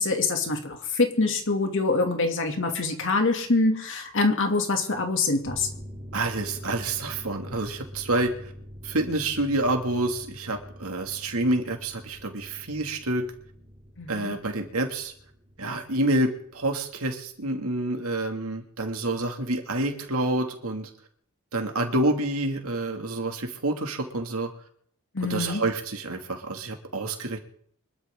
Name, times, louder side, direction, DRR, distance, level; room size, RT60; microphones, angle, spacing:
voice 1, 0.0-5.7 14.0-14.3 25.1-25.6, left 3 dB, 60° left, 3 dB, 2.6 m, -25 dB
sound 1, 5.4-17.6 17.9-18.0, equal, 20° right, 3.3 m, -45 dB
voice 2, 6.1-8.5 8.8-13.3 14.1-15.1 15.6-20.9 21.5-24.5 25.2-27.4, right 2 dB, 75° right, 3 dB, 2.4 m, -28 dB
24.5 x 12.5 x 3.8 m, 0.62 s
head